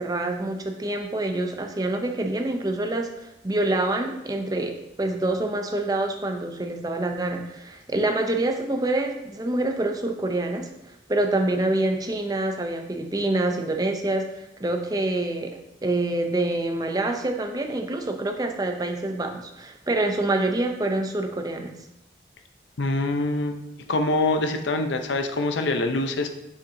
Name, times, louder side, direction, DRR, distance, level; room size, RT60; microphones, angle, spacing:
voice 1, 0.0-10.7 11.1-14.3 14.6-21.7, right 2 dB, 20° right, 4 dB, 0.5 m, -26 dB
voice 2, 22.8-23.5 23.9-26.3, left 2 dB, 80° left, 6 dB, 0.6 m, -24 dB
6.5 x 5.6 x 2.7 m, 0.90 s
head